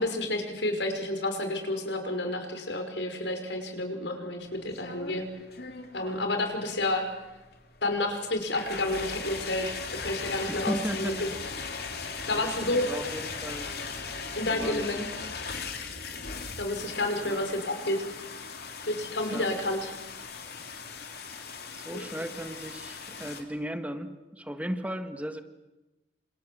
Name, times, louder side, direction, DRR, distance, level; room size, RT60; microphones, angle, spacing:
voice 1, 0.0-5.2 5.9-7.1 7.8-11.3 12.3-13.0 14.4-15.1 16.6-18.0 18.9-19.9 21.9-22.0, left 2 dB, 85° left, 5 dB, 5.4 m, -30 dB
sound 1, 4.4-23.4, left 5 dB, 60° left, 3.4 m, -39 dB
voice 2, 10.5-11.2 12.3-13.7 14.5-14.9 17.2-17.4 19.3-19.5 21.1-21.2 21.7-25.4, equal, 10° right, 8 dB, 1.5 m, -36 dB
28.5 x 27.0 x 7.8 m, 1.1 s
head